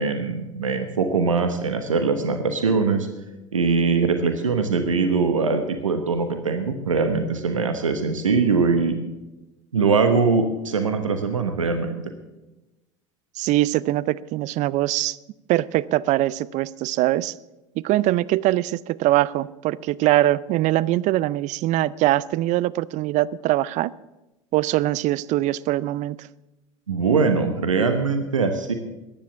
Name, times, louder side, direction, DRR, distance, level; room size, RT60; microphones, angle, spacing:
voice 1, 0.0-3.1 3.5-9.0 9.7-12.0 26.9-28.7, right 4 dB, 90° right, 7 dB, 1.2 m, -22 dB
voice 2, 13.4-15.2 15.5-17.3 17.8-23.9 24.5-26.3, right 15 dB, 50° right, 21 dB, 0.5 m, -22 dB
14.0 x 10.5 x 7.0 m, 1.0 s
hypercardioid pair, 75°, 16 cm